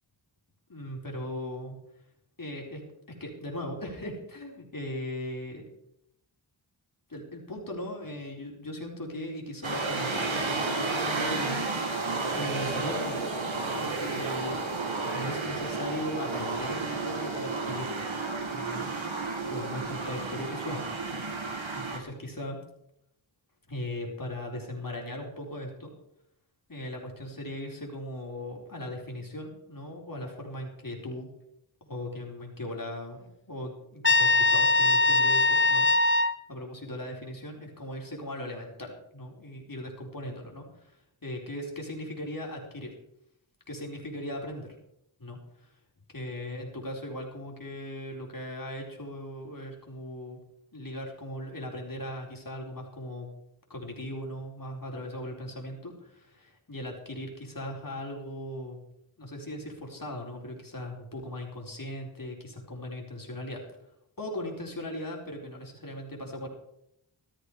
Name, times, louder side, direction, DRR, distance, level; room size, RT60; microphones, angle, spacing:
voice 1, 0.7-1.8 2.4-2.8 3.2-5.7 7.1-18.0 18.5-18.9 19.5-21.5 21.7-22.6 23.7-25.9 26.7-31.3 31.8-43.0 43.7-44.8 45.2-45.7 46.1-50.4 50.7-53.3 53.7-58.8 59.2-63.6 64.2-66.5, left 1 dB, 45° left, 0 dB, 4.4 m, -38 dB
sound 1, 9.6-22.0, right 3 dB, 70° right, 2.4 m, -32 dB
Trumpet, 34.0-36.4, left 2 dB, 25° left, 0.9 m, -21 dB
15.0 x 13.0 x 5.0 m, 0.78 s
wide cardioid pair, 65°, 48 cm